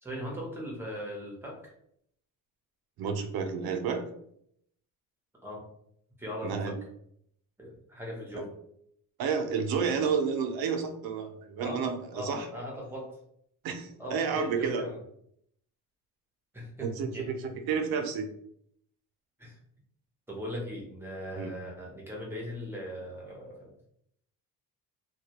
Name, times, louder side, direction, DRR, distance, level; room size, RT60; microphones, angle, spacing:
voice 1, 0.0-1.7 5.4-5.6 6.2-6.6 7.6-8.5 11.6-11.8 12.1-13.1 14.0-15.0 16.5-17.3 19.4-19.6 20.3-23.9, equal, 5° right, -2 dB, 0.6 m, -39 dB
voice 2, 3.0-4.1 6.4-6.8 8.4-8.5 9.2-12.5 13.6-14.9 16.8-18.3 21.4-21.5, right 6 dB, 85° right, 6 dB, 0.5 m, -31 dB
2.3 x 2.1 x 2.8 m, 0.71 s
cardioid pair, 150°, 35 cm